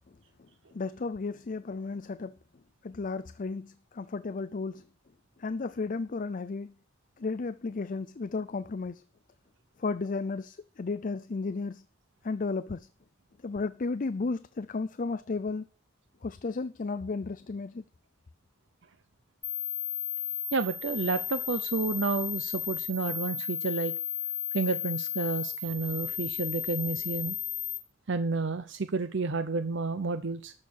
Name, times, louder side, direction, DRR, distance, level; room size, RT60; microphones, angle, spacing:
voice 1, 0.7-2.3 2.8-4.8 5.4-6.7 7.2-9.0 9.8-11.8 12.2-12.9 13.4-15.7 16.2-17.8, left 4 dB, 40° left, 0.5 m, -33 dB
sound 1, 19.4-27.8, left 8 dB, 15° left, 2.5 m, -34 dB
voice 2, 20.5-23.9 24.5-27.4 28.1-30.5, right 4 dB, 60° right, 0.7 m, -30 dB
13.0 x 6.5 x 7.2 m
head